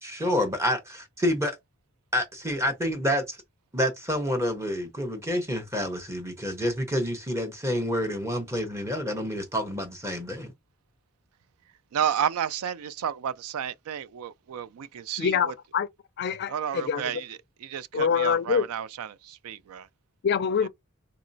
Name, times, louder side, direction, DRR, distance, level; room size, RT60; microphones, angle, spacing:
voice 1, 0.0-1.6 2.1-3.4 3.7-10.5, equal, 15° right, 0.9 m, -28 dB
voice 2, 11.9-15.5 16.5-19.9 20.6-20.7, right 9 dB, 80° right, 0.3 m, -32 dB
voice 3, 15.2-15.9 16.2-17.1 17.9-18.7 20.2-20.7, left 6 dB, 50° left, 0.4 m, -25 dB
3.9 x 2.9 x 2.6 m
head